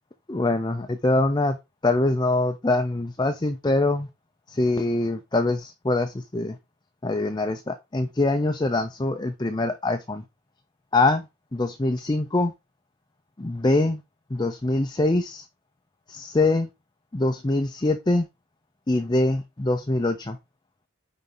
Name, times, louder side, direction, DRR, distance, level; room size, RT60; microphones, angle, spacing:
voice 1, 0.3-1.6 1.8-4.1 4.5-6.6 7.0-10.2 10.9-11.3 11.5-12.5 13.4-14.0 14.3-15.5 16.1-16.7 17.1-18.3 18.9-20.4, left 2 dB, 20° left, 0.5 m, -24 dB
9.4 x 4.2 x 3.8 m
head